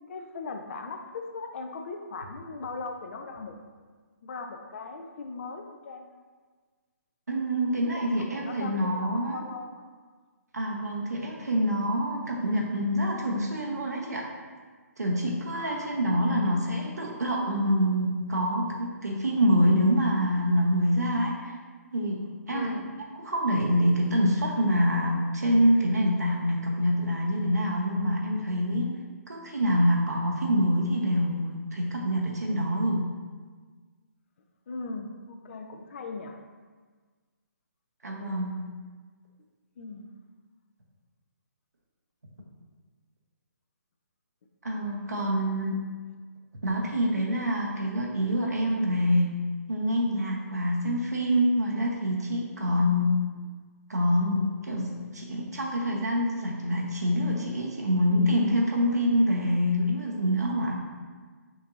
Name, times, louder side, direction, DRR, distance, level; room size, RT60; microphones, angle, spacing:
voice 1, 0.1-3.5 4.2-6.1 7.9-9.8 15.5-16.0 22.5-22.9 34.7-36.4 39.8-40.1 42.4-42.5 52.7-53.0, left 3 dB, 50° left, 5 dB, 0.4 m, -39 dB
voice 2, 7.3-9.4 10.5-14.3 15.0-21.5 21.9-22.2 22.5-22.7 23.2-28.9 29.3-33.0 38.0-38.6 44.6-45.7 46.6-49.3 49.7-53.1 53.9-60.8, equal, 85° right, -2 dB, 0.8 m, -26 dB
5.8 x 2.7 x 2.4 m, 1.5 s
figure-of-eight pair, 140°, 9 cm